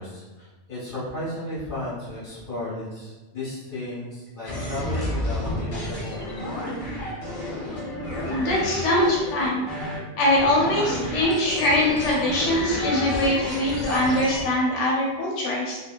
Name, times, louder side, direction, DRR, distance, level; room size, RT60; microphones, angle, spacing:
voice 1, 0.0-6.3, left 1 dB, 45° left, -9 dB, 1.5 m, -34 dB
sound 1, 4.5-14.5, left 1 dB, 65° left, 1.2 m, -30 dB
voice 2, 8.3-9.6 10.2-15.8, left 1 dB, 90° left, -4 dB, 0.9 m, -22 dB
3.0 x 2.2 x 2.3 m, 1.2 s
omnidirectional pair, 1.2 m